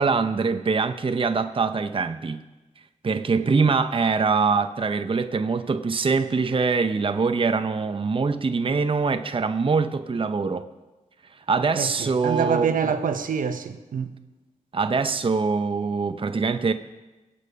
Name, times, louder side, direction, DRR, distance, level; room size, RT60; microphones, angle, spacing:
voice 1, 0.0-2.4 3.0-10.7 11.5-12.8 14.7-16.7, right 4 dB, 40° right, 0.7 m, -23 dB
voice 2, 11.8-14.1, right 6 dB, 80° right, 1.1 m, -26 dB
21.5 x 8.6 x 5.2 m
cardioid pair, 55°, 14 cm